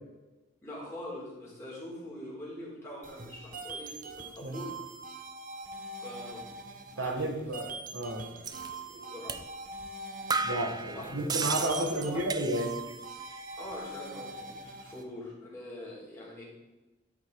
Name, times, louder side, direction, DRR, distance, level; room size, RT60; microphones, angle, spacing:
voice 1, 0.6-4.8 6.0-6.5 7.0-7.5 8.7-9.4 10.9-11.1 11.6-12.4 13.6-16.5, left 1 dB, 15° left, -6 dB, 3.7 m, -43 dB
sound 1, 3.0-15.0, right 2 dB, 45° right, 1.0 m, -43 dB
voice 2, 7.0-7.7 7.9-8.2 10.4-12.7, right 1 dB, 80° right, 3 dB, 1.6 m, -32 dB
sound 2, 8.4-8.7 9.3-9.5 9.8-9.9 10.3-12.9 13.2-13.8, right 4 dB, 20° right, 0.4 m, -34 dB
12.5 x 5.5 x 4.9 m, 1.1 s
head